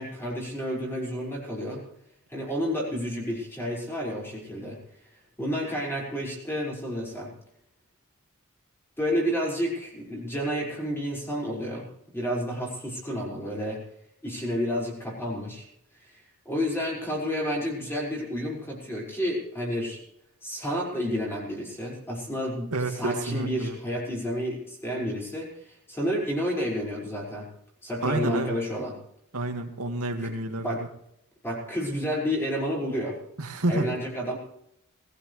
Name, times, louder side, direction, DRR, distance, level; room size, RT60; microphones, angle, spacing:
voice 1, 0.0-1.8 2.3-4.8 5.4-7.3 9.0-11.9 12.1-13.8 14.2-15.7 16.5-20.0 20.4-27.5 27.8-29.0 30.2-30.8 31.4-33.2 33.7-34.4, equal, 10° left, -3 dB, 5.5 m, -30 dB
voice 2, 22.7-23.8 28.0-28.6 29.3-30.9 33.4-33.9, right 2 dB, 85° right, 5 dB, 2.1 m, -29 dB
20.5 x 15.0 x 3.3 m, 0.76 s
head